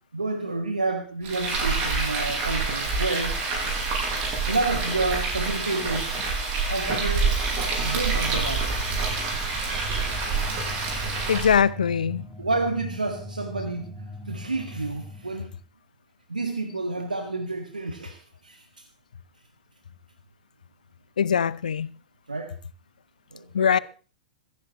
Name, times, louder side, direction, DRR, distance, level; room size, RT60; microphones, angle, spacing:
voice 1, 0.1-3.4 4.5-6.1 6.7-7.4 7.8-8.7 12.4-13.9 14.3-15.5 16.3-18.6 22.3-22.5 23.3-23.8, right 3 dB, 80° right, 1.7 m, -29 dB
Frying (food), 1.2-11.6, right 4 dB, 40° right, 6.8 m, -27 dB
sound 1, 8.2-15.6, left 1 dB, 10° right, 2.1 m, -40 dB
voice 2, 11.3-12.2 21.2-21.9 23.5-23.8, left 7 dB, 70° left, 0.6 m, -22 dB
26.5 x 10.5 x 3.1 m
figure-of-eight pair, 95°, 4 cm